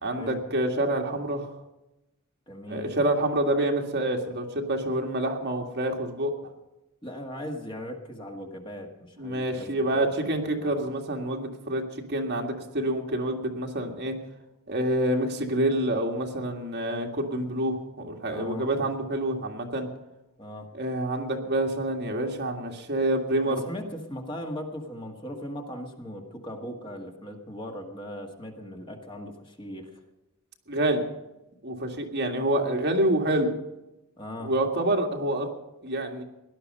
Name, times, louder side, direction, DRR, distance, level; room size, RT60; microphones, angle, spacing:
voice 1, 0.0-1.5 2.7-6.4 9.2-11.8 12.1-14.1 14.7-19.9 20.7-23.6 30.7-31.0 31.6-33.5 34.4-35.5 35.8-36.2, right 1 dB, 50° right, 1 dB, 2.0 m, -27 dB
voice 2, 2.5-2.9 7.0-10.3 10.6-10.8 18.3-18.7 20.4-20.7 23.5-29.9 34.2-34.5, equal, 20° left, 2 dB, 1.7 m, -38 dB
17.5 x 11.5 x 5.4 m, 0.98 s
head